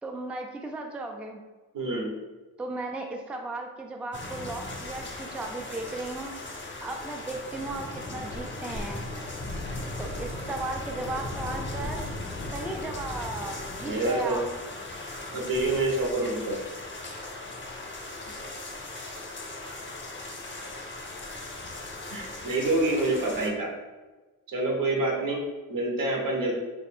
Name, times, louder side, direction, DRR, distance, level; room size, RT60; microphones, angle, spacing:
voice 1, 0.0-1.4 2.6-6.4 6.8-9.1 10.0-12.1 12.5-14.4, right 2 dB, 5° right, 2 dB, 0.3 m, -36 dB
voice 2, 1.7-2.1 13.8-14.4 15.3-16.6 22.1-23.7 24.5-25.4 25.7-26.5, right 2 dB, 60° right, -1 dB, 1.1 m, -27 dB
sound 1, 4.1-23.5, left 2 dB, 30° left, 0.8 m, -38 dB
3.1 x 2.5 x 4.3 m, 1.2 s
cardioid pair, 80°, 36 cm